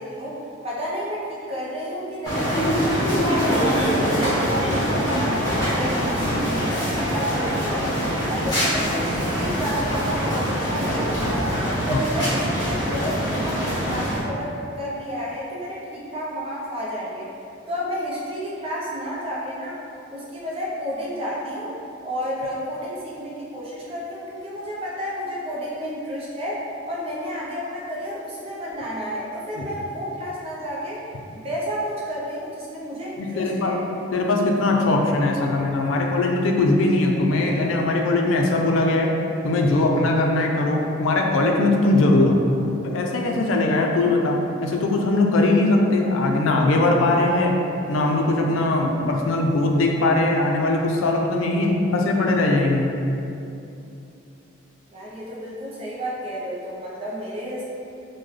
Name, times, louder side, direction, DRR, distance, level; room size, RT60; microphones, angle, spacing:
voice 1, 0.0-7.9 8.3-11.5 11.9-17.3 17.7-19.8 20.1-21.8 22.0-31.0 31.3-33.9 54.9-57.6, equal, 30° right, -6 dB, 0.6 m, -31 dB
sound 1, 2.2-14.2, equal, 20° left, 1.0 m, -23 dB
voice 2, 33.2-33.8 34.1-39.1 39.4-42.4 42.8-47.5 47.9-52.9, left 2 dB, 90° left, 1 dB, 0.4 m, -20 dB
3.1 x 2.1 x 3.6 m, 2.7 s
head